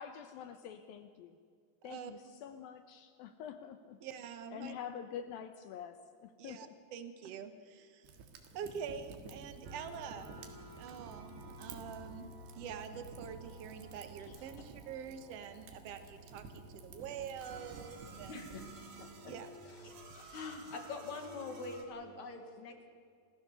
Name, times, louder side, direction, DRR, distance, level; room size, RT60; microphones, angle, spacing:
voice 1, 0.0-1.4 1.8-4.0 4.5-6.7, left 8 dB, 75° left, 9 dB, 2.3 m, -46 dB
voice 2, 1.8-2.3 4.0-4.8 6.4-8.1 8.5-10.4 10.8-12.3 12.5-18.4 19.3-19.5, right 7 dB, 65° right, 9 dB, 1.5 m, -46 dB
Fire, 8.0-18.7, right 4 dB, 85° right, 3.8 m, -53 dB
sound 1, 9.6-21.9, right 2 dB, 50° right, 2.9 m, -53 dB
voice 3, 18.3-19.4 19.7-22.9, left 4 dB, 55° left, 5 dB, 2.7 m, -45 dB
28.0 x 15.5 x 7.0 m, 2.2 s
omnidirectional pair, 4.7 m